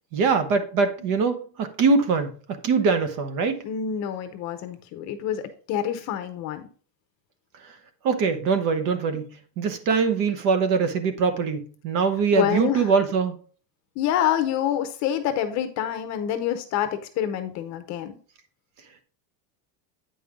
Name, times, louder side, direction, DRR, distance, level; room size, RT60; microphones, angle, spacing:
voice 1, 0.1-2.3 2.6-3.6 7.6-7.7 8.0-9.3 9.6-13.4, right 5 dB, 40° right, 1.0 m, -22 dB
voice 2, 3.6-6.6 9.1-9.2 12.3-12.9 14.0-18.2, left 10 dB, 35° left, 0.8 m, -27 dB
8.7 x 5.4 x 3.6 m
supercardioid pair, 165°, 47 cm